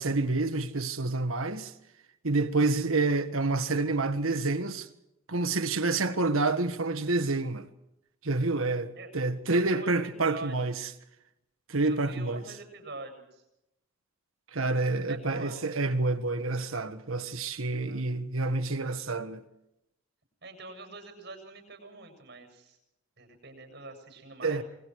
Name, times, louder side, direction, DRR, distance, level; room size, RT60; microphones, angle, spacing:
voice 1, 0.0-1.7 2.2-4.9 5.3-7.7 8.2-10.8 11.7-12.4 14.5-19.4 24.4-24.6, right 3 dB, 85° right, 1.5 m, -28 dB
voice 2, 9.5-10.7 11.8-13.4 15.1-15.6 17.8-18.0 20.4-22.8 23.2-24.6, right 2 dB, 50° right, 7.2 m, -44 dB
28.0 x 21.0 x 4.8 m
head